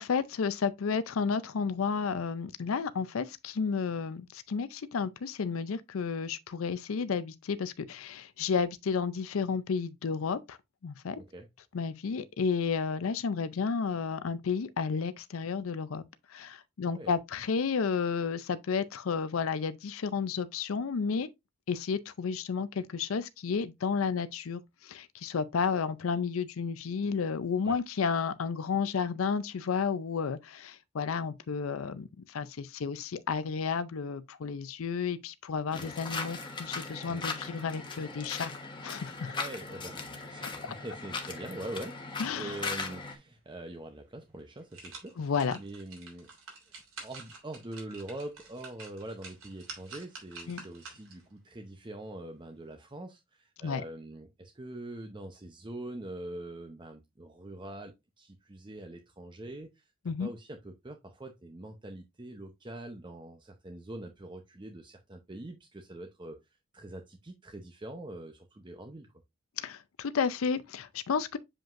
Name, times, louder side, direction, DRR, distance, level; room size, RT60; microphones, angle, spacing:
voice 1, 0.0-10.6 10.8-11.2 11.7-16.0 16.3-21.3 21.7-38.5 38.8-39.3 40.6-40.7 42.2-42.6 45.2-45.6 50.5-50.6 53.6-53.8 60.1-60.3 69.6-71.4, left 5 dB, 75° left, 0.5 m, -32 dB
voice 2, 11.2-11.5 16.8-17.1 27.6-27.8 35.8-35.9 37.1-37.2 39.3-46.3 46.7-59.9 60.2-66.4 66.7-69.1, right 1 dB, 20° right, 0.7 m, -44 dB
sound 1, 35.7-43.1, left 4 dB, 25° left, 1.1 m, -39 dB
sound 2, 43.8-43.9 44.4-51.3 51.7-51.8, right 4 dB, 90° right, 3.1 m, -48 dB
7.4 x 5.2 x 2.5 m
head